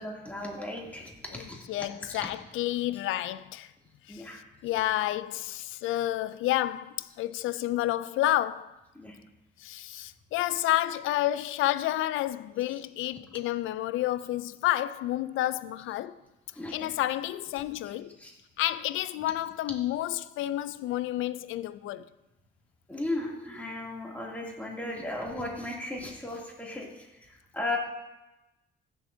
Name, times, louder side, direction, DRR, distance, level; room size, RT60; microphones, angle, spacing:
voice 1, 0.0-1.6 4.1-4.4 8.9-9.2 16.5-16.9 17.8-17.9 18.2-18.3 22.9-27.8, left 2 dB, 5° left, 2.7 m, -36 dB
voice 2, 1.4-3.7 4.1-4.2 4.6-8.7 9.6-16.2 16.7-18.1 18.6-22.1, left 14 dB, 85° left, 0.4 m, -30 dB
15.5 x 7.0 x 2.8 m
cardioid pair, 90°, 20 cm